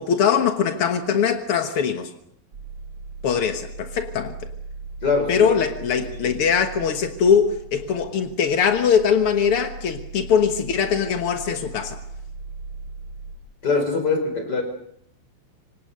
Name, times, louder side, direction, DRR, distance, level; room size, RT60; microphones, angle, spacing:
voice 1, 0.0-2.1 3.2-4.4 5.3-12.0, left 7 dB, 60° left, 1.5 m, -21 dB
sound 1, 2.5-13.4, right 3 dB, 40° right, 4.3 m, -38 dB
voice 2, 5.0-5.5 5.9-6.4 13.6-14.6, left 4 dB, 25° left, 5.0 m, -23 dB
27.0 x 25.5 x 6.7 m
omnidirectional pair, 4.4 m